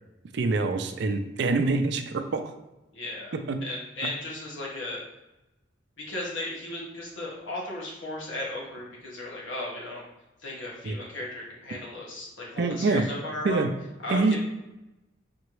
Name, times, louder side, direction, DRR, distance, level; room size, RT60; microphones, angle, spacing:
voice 1, 0.3-2.4 3.5-3.6 10.8-11.0 12.6-13.0 13.4-13.7 14.1-14.4, right 3 dB, 60° right, 7 dB, 0.4 m, -25 dB
voice 2, 2.9-3.3 3.6-5.0 6.0-10.0 10.4-13.7 14.0-14.4, left 1 dB, 80° left, -4 dB, 1.4 m, -35 dB
4.4 x 2.9 x 3.1 m, 0.97 s
head